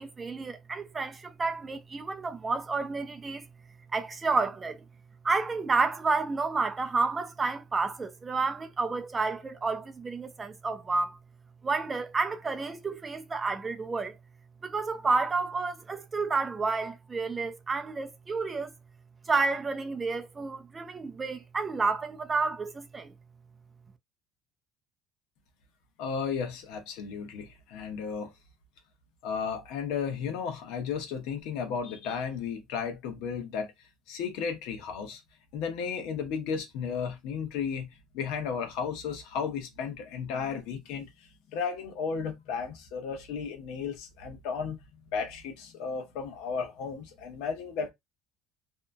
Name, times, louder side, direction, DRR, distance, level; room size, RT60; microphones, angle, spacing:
voice 1, 0.0-3.4 3.9-4.8 5.2-11.2 11.6-14.2 14.6-18.7 19.3-23.1, right 4 dB, 20° right, 0.4 m, -30 dB
voice 2, 26.0-28.3 29.2-33.7 34.1-35.2 35.5-37.9 38.1-41.1 41.5-44.8 45.1-47.9, left 6 dB, 75° left, 0.9 m, -34 dB
2.8 x 2.2 x 2.6 m
cardioid pair, 135°, 0 cm